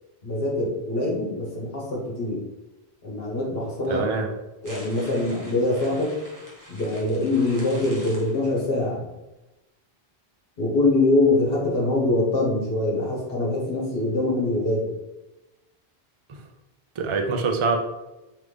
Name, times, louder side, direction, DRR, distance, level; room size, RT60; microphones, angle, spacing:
voice 1, 0.2-2.4 3.0-4.1 4.6-6.1 6.7-9.0 10.6-14.9, left 2 dB, 65° left, -4 dB, 1.4 m, -24 dB
voice 2, 3.9-4.3 17.0-17.8, right 4 dB, 45° right, 4 dB, 0.4 m, -24 dB
sound 1, 4.6-8.8, equal, 20° right, 0.9 m, -44 dB
3.7 x 3.2 x 3.3 m, 1.0 s
omnidirectional pair, 1.1 m